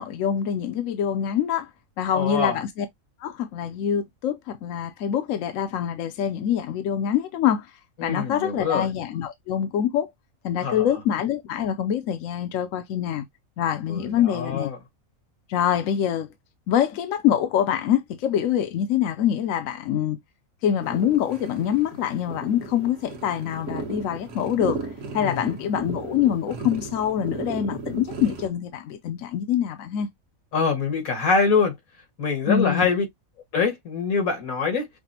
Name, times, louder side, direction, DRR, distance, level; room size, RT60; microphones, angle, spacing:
voice 1, 0.0-1.7 2.0-2.9 3.2-7.7 8.0-10.1 10.4-13.2 13.6-14.7 15.5-16.3 16.7-20.2 20.6-24.9 25.1-30.1 32.5-32.9, left 9 dB, 75° left, 0.9 m, -25 dB
voice 2, 2.1-2.6 8.0-8.9 10.6-10.9 13.9-14.8 25.2-25.5 30.5-31.7 32.2-33.1 33.5-34.9, left 5 dB, 90° left, 2.1 m, -24 dB
sound 1, 20.8-28.5, right 3 dB, 60° right, 1.3 m, -35 dB
5.9 x 2.1 x 2.7 m
omnidirectional pair, 1.4 m